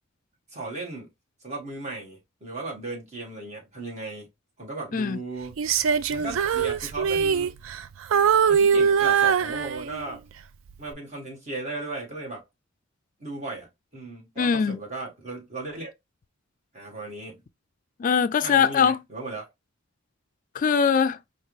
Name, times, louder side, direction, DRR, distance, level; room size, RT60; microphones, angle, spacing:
voice 1, 0.5-1.1 1.4-4.3 4.6-5.6 6.1-7.6 8.5-10.2 10.8-12.4 13.2-15.9 16.7-17.4 18.4-19.5, right 3 dB, 35° right, 1.7 m, -36 dB
Female singing, 5.6-10.2 10.7-10.9, right 7 dB, 70° right, 0.4 m, -22 dB
voice 2, 14.4-14.8 18.0-19.0 20.5-21.2, left 6 dB, 40° left, 0.3 m, -21 dB
4.6 x 2.4 x 3.1 m
head